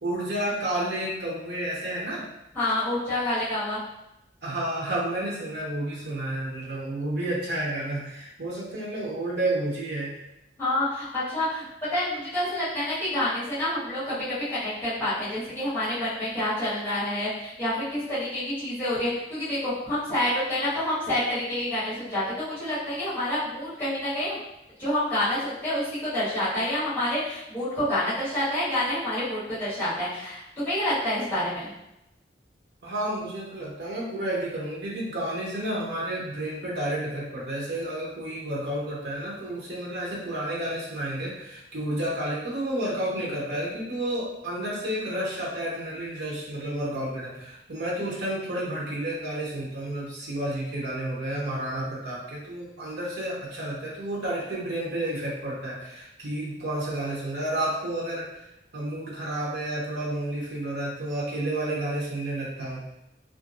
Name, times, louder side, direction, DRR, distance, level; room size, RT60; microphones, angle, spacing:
voice 1, 0.0-2.2 4.4-10.1 32.8-58.4 58.7-62.8, right 1 dB, 75° right, -5 dB, 0.8 m, -31 dB
voice 2, 2.5-3.8 10.6-11.6 11.9-24.4 24.8-31.7, left 1 dB, 10° left, -13 dB, 1.5 m, -28 dB
2.9 x 2.5 x 2.5 m, 0.88 s
head